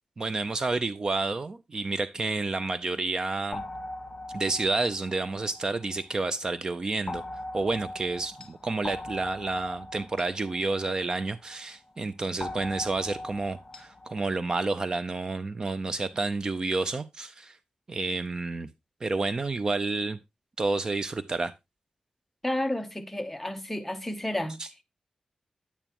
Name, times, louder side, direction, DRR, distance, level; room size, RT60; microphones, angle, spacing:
voice 1, 0.2-3.6 4.3-7.2 7.5-17.6 17.9-18.7 19.0-20.2 20.6-21.5 24.6-24.7, right 3 dB, 35° right, 0.5 m, -30 dB
sound 1, 3.5-6.3 7.1-11.6 12.4-14.2, left 2 dB, 30° left, 1.1 m, -40 dB
voice 2, 22.4-24.6, left 1 dB, 5° left, 0.8 m, -31 dB
10.0 x 8.9 x 2.9 m
wide cardioid pair, 170°, 2 cm